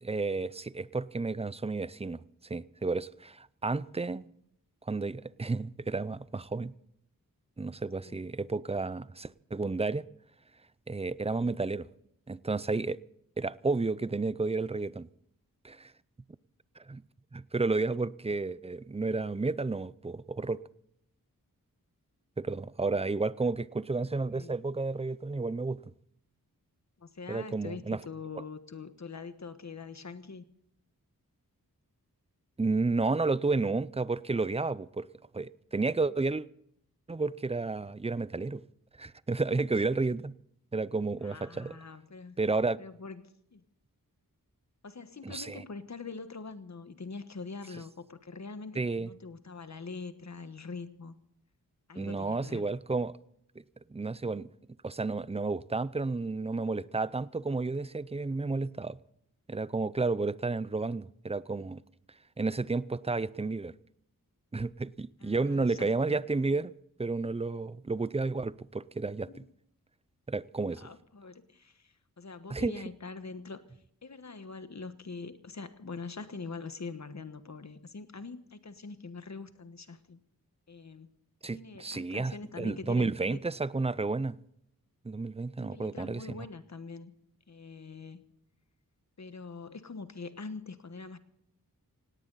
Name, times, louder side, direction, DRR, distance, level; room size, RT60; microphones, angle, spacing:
voice 1, 0.0-4.3 4.9-6.7 7.6-10.1 10.9-11.9 12.3-13.0 13.4-15.1 15.6-15.9 16.9-17.0 17.3-20.6 22.4-25.8 27.3-28.0 32.6-35.1 35.3-36.5 37.1-38.6 39.0-40.3 40.7-41.7 42.4-42.8 45.2-45.6 48.7-49.1 52.0-53.1 53.9-54.5 54.8-59.0 59.5-61.8 62.4-63.7 64.5-66.7 67.0-69.4 70.3-70.9 72.5-72.8 81.4-84.4 85.0-86.5, right 3 dB, 15° right, 0.5 m, -31 dB
voice 2, 27.0-30.5 41.2-42.3 42.8-43.6 44.8-51.1 51.9-52.6 65.2-66.2 69.2-69.5 70.6-73.6 74.0-80.2 80.7-81.1 81.5-83.4 85.6-87.1 87.5-88.2 89.2-91.2, left 4 dB, 50° left, 1.3 m, -44 dB
18.5 x 18.0 x 4.0 m
wide cardioid pair, 75°, 35 cm